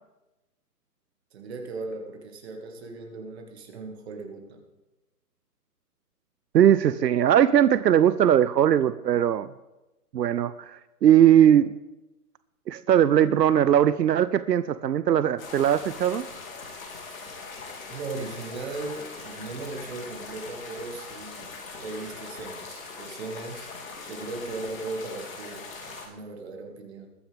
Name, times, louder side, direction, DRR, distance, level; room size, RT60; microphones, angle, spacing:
voice 1, 1.3-4.6 17.0-17.3 17.9-23.7 24.1-27.1, right 3 dB, 40° right, 3 dB, 2.4 m, -38 dB
voice 2, 6.5-9.5 10.1-11.7 12.7-16.2, right 10 dB, 85° right, 15 dB, 0.6 m, -20 dB
sound 1, 15.4-26.1, left 4 dB, 55° left, 3.3 m, -41 dB
21.0 x 9.2 x 3.6 m, 1.0 s
hypercardioid pair, 150°, 47 cm